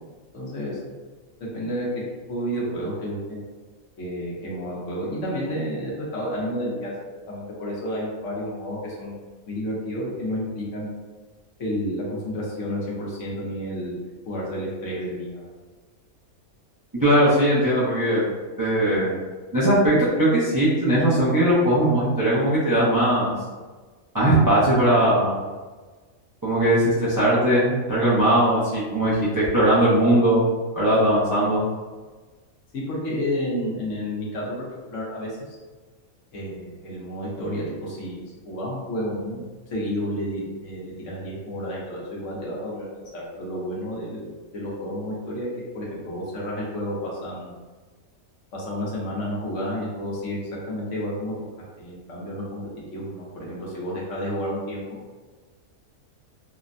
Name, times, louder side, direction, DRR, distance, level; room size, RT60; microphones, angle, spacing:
voice 1, 0.3-0.8 1.4-3.4 4.0-6.9 7.3-9.1 9.5-10.9 11.6-15.4 32.7-35.4 36.3-39.4 39.7-42.9 43.1-45.5 45.7-47.5 48.5-50.4 50.7-51.3 51.8-52.6 52.9-54.8, equal, 65° left, -5 dB, 1.1 m, -30 dB
voice 2, 17.0-18.2 18.6-19.1 19.5-23.3 24.1-25.3 26.4-30.4 30.7-31.6, right 1 dB, 30° right, -10 dB, 0.4 m, -19 dB
3.3 x 2.1 x 2.5 m, 1.3 s
omnidirectional pair, 1.5 m